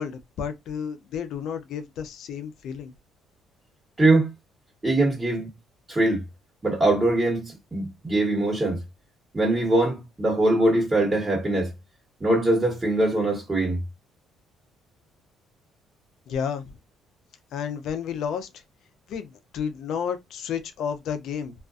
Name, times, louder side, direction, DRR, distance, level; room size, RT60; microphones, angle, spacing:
voice 1, 0.0-2.9 16.3-16.7 17.5-18.6 19.1-21.5, left 7 dB, 70° left, 0.5 m, -31 dB
voice 2, 4.0-4.3 4.8-5.5 5.9-6.2 6.6-8.8 9.3-11.7 12.2-13.8, right 2 dB, 25° right, 1.2 m, -22 dB
2.4 x 2.2 x 2.4 m
cardioid pair, 85°, 0 cm